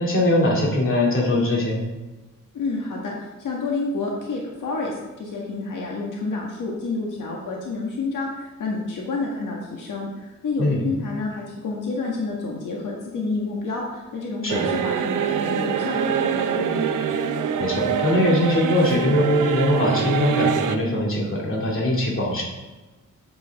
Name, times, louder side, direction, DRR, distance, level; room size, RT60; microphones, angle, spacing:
voice 1, 0.0-1.8 10.6-10.8 14.4-14.7 17.6-22.4, left 1 dB, 40° left, -3 dB, 2.5 m, -21 dB
voice 2, 2.5-16.9, left 3 dB, 80° left, -2 dB, 1.6 m, -29 dB
sound 1, 14.5-20.8, right 7 dB, 75° right, 0.7 m, -24 dB
9.0 x 8.2 x 3.5 m, 1.2 s
wide cardioid pair, 145°, 31 cm